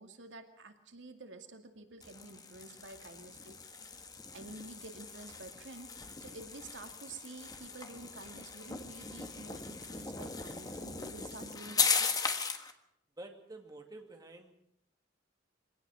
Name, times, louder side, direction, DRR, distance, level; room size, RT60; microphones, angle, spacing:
voice 1, 0.0-3.6 4.3-5.9 6.2-12.1, right 2 dB, 85° right, 6 dB, 2.3 m, -50 dB
sound 1, 2.0-12.7, left 5 dB, 20° left, 1.5 m, -38 dB
voice 2, 13.2-14.6, right 2 dB, 20° right, 3 dB, 2.2 m, -49 dB
23.0 x 18.0 x 6.4 m, 0.74 s
head